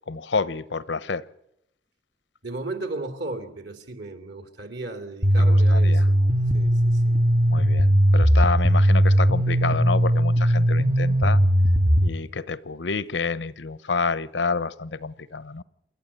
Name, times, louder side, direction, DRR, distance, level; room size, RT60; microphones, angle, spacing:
voice 1, 0.1-1.2 5.4-6.1 7.5-11.4 12.0-15.6, left 4 dB, 90° left, 17 dB, 0.9 m, -29 dB
voice 2, 2.4-6.2 6.5-7.2, right 2 dB, 75° right, 7 dB, 3.0 m, -35 dB
sound 1, 5.2-12.1, equal, 50° right, 1.8 m, -19 dB
28.0 x 12.5 x 9.8 m, 0.81 s
head